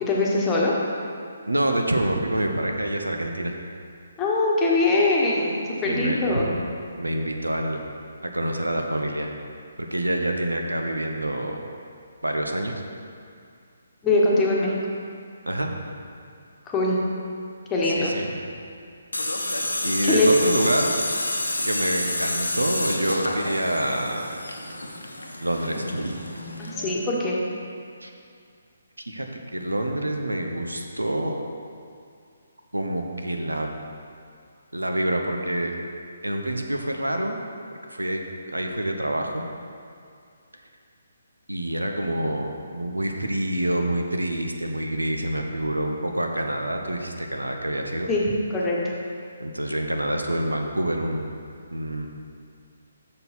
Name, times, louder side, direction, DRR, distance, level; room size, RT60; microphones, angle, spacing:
voice 1, 0.0-0.7 4.2-6.5 14.0-14.8 16.7-17.0 17.7-18.1 20.0-20.3 26.6-27.4 48.1-48.2 48.5-48.8, left 2 dB, 15° left, -4 dB, 1.3 m, -22 dB
voice 2, 1.5-3.6 5.8-6.4 7.0-7.9 8.3-9.3 9.8-11.6 12.2-12.8 15.5-16.0 17.8-18.4 19.8-20.9 21.6-24.4 25.4-26.1 28.0-28.1 29.1-29.3 29.5-31.4 32.7-33.7 34.7-35.7 36.2-37.4 37.9-38.2 38.5-39.4 41.5-48.1 49.4-51.3 51.7-52.1, right 1 dB, 85° right, 3 dB, 0.9 m, -27 dB
Tools, 19.1-26.9, left 1 dB, 85° left, 0.9 m, -29 dB
6.8 x 6.4 x 5.9 m, 2.3 s
figure-of-eight pair, 140°, 0 cm